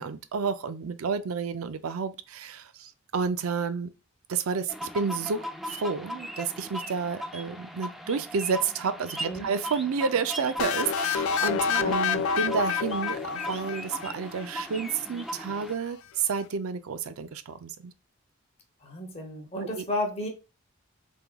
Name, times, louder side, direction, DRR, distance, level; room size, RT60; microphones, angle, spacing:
voice 1, 0.0-3.9 4.3-17.9 19.8-19.9, right 5 dB, 90° right, 0.4 m, -30 dB
sound 1, 4.7-15.7, equal, ahead, 0.3 m, -38 dB
sound 2, 10.6-14.4, left 7 dB, 80° left, 0.3 m, -28 dB
voice 2, 18.8-20.3, left 1 dB, 30° left, 0.8 m, -33 dB
3.5 x 3.5 x 2.2 m
head